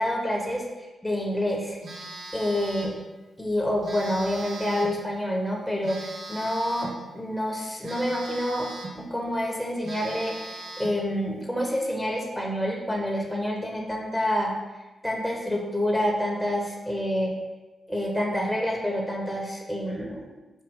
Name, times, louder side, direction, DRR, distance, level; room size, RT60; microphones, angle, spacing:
voice 1, 0.0-1.8 2.3-2.9 3.4-8.7 9.0-14.5 15.0-17.3 17.9-20.3, equal, ahead, -1 dB, 0.9 m, -28 dB
Telephone, 1.8-3.0 3.8-5.0 5.8-7.0 7.8-9.0 9.4-9.5 9.8-11.0, right 2 dB, 65° right, 0.8 m, -39 dB
4.3 x 2.2 x 3.5 m, 1.1 s
supercardioid pair, 45°, 0 cm